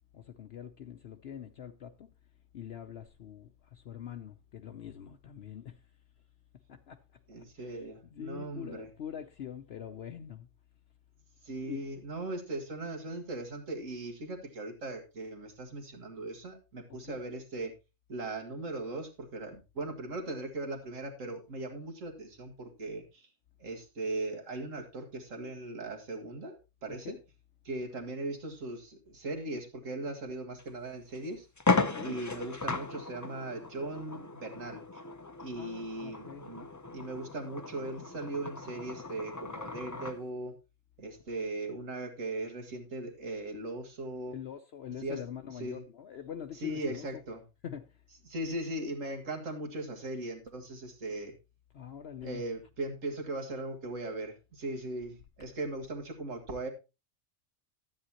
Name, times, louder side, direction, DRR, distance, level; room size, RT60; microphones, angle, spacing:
voice 1, 0.1-2.1 2.5-5.8 6.7-7.0 7.4-10.5 11.6-11.8 16.9-17.2 26.9-27.2 31.8-32.2 35.5-36.5 41.3-41.4 44.3-47.1 47.6-48.0 51.7-52.4, left 9 dB, 60° left, 0.9 m, -44 dB
voice 2, 7.3-8.9 11.4-17.7 18.1-23.3 23.6-26.6 26.8-27.2 27.6-31.5 32.0-35.0 35.4-40.5 41.0-44.4 45.0-45.2 45.6-45.8 46.6-47.4 48.3-51.3 52.2-56.7, right 2 dB, 75° right, 2.2 m, -38 dB
sound 1, 30.6-30.7 31.1-31.2 31.6-40.2, left 3 dB, 25° left, 0.4 m, -36 dB
12.5 x 9.0 x 2.9 m
omnidirectional pair, 1.3 m